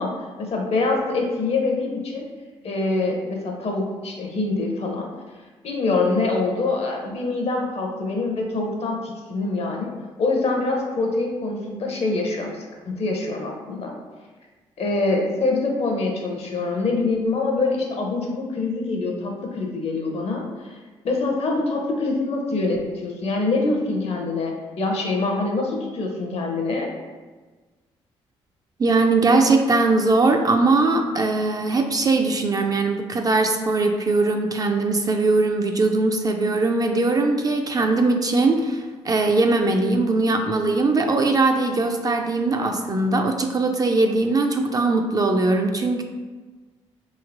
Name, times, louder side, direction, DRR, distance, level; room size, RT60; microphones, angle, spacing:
voice 1, 0.0-2.2 2.6-5.1 5.6-9.9 10.2-13.9 14.8-20.8 21.0-26.9, left 3 dB, 55° left, 1 dB, 0.7 m, -25 dB
voice 2, 28.8-46.0, right 3 dB, 30° right, 3 dB, 0.3 m, -20 dB
3.0 x 2.7 x 2.5 m, 1.3 s
supercardioid pair, 55°, 13 cm